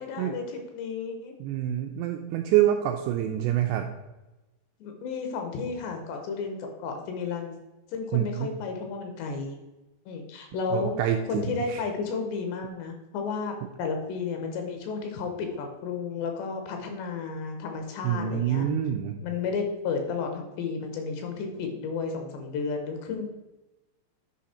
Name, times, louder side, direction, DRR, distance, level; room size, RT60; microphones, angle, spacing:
voice 1, 0.0-1.3 4.8-7.5 7.9-9.6 10.1-10.9 11.3-18.7 19.2-23.3, left 5 dB, 75° left, 4 dB, 2.9 m, -32 dB
voice 2, 1.4-3.9 8.1-8.5 10.7-11.8 18.0-19.2, right 11 dB, 85° right, 4 dB, 2.5 m, -26 dB
9.5 x 5.2 x 4.3 m, 1.0 s
omnidirectional pair, 5.5 m